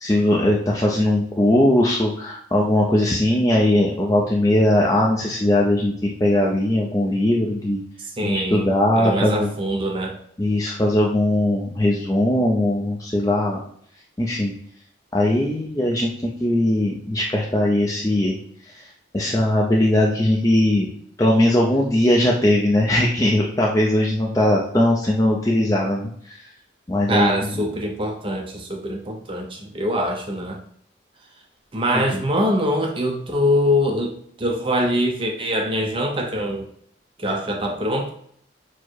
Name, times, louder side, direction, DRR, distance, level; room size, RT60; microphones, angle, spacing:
voice 1, 0.0-5.9 6.2-7.8 8.2-9.5 10.4-13.6 14.2-14.5 15.1-18.4 19.1-20.9 21.2-26.1 26.9-27.3 31.9-32.0, left 1 dB, 15° left, -2 dB, 0.4 m, -19 dB
voice 2, 8.2-10.2 27.1-30.6 31.7-36.7 37.2-38.1, equal, 30° right, 2 dB, 0.6 m, -23 dB
4.5 x 2.1 x 4.5 m, 0.65 s
head